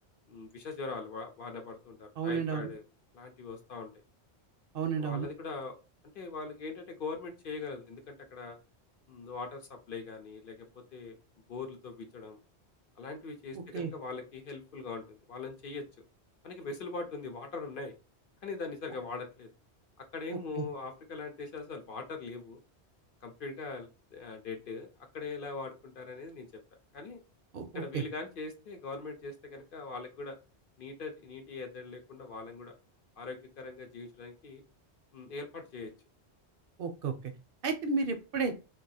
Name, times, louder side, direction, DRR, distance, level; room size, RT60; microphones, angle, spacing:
voice 1, 0.3-2.8 3.1-3.9 5.0-5.8 6.1-8.6 9.1-11.2 11.5-12.4 13.0-15.9 16.4-17.9 18.4-19.5 20.0-22.6 23.2-26.5 26.9-27.2 27.7-30.4 30.8-32.7 33.2-34.6 35.1-35.9, left 4 dB, 55° left, 4 dB, 0.8 m, -41 dB
voice 2, 2.2-2.7 4.7-5.3 13.7-13.9 20.3-20.6 27.5-28.0 36.8-37.3 37.6-38.5, right 5 dB, 65° right, 6 dB, 0.7 m, -32 dB
2.7 x 2.3 x 4.0 m, 0.32 s
omnidirectional pair, 1.1 m